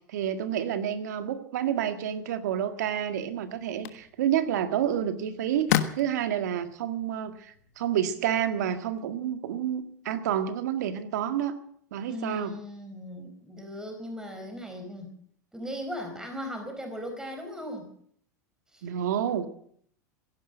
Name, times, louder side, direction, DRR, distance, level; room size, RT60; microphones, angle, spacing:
voice 1, 0.1-11.6 11.9-12.6 18.8-19.5, right 10 dB, 75° right, 9 dB, 1.9 m, -29 dB
sound 1, 2.8-9.0, left 12 dB, 70° left, 1.4 m, -36 dB
voice 2, 12.1-15.1 15.5-17.9 18.7-18.9, left 1 dB, 5° right, 4 dB, 4.5 m, -38 dB
16.5 x 11.0 x 7.9 m, 0.63 s
hypercardioid pair, 90°, 9 cm